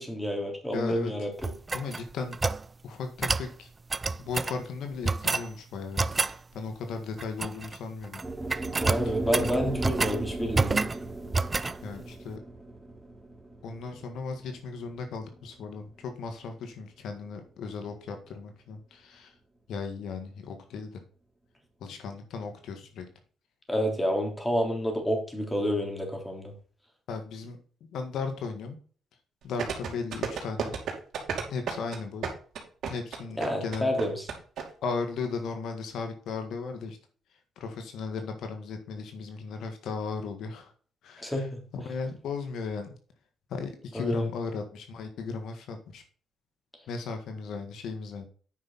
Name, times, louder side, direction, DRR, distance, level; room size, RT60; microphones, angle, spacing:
voice 1, 0.0-1.5 8.8-10.8 23.7-26.5 33.4-34.3 41.2-41.6 43.9-44.3, equal, 10° left, 2 dB, 3.4 m, -29 dB
voice 2, 0.7-1.1 1.7-2.4 2.8-3.7 4.2-8.2 9.0-9.1 11.8-12.4 13.6-19.3 19.7-21.0 21.8-23.0 27.1-27.6 27.9-28.8 29.4-30.7 31.5-32.3 32.9-33.9 34.8-37.0 37.6-40.7 41.0-42.9 43.5-46.0 46.9-48.3, left 4 dB, 75° left, 6 dB, 1.7 m, -36 dB
sound 1, 1.4-2.6 3.2-3.5 3.9-4.6 5.0-5.5 6.0-6.4 7.2-7.8 8.0-8.2 8.5-10.2 10.5-11.0 11.3-11.8, right 3 dB, 25° right, 0.4 m, -28 dB
sound 2, 8.2-16.5, right 2 dB, 10° right, 2.3 m, -36 dB
sound 3, 29.6-34.6 34.9-35.0, right 7 dB, 70° right, 2.7 m, -32 dB
9.3 x 6.0 x 4.1 m, 0.43 s
cardioid pair, 90°, 0 cm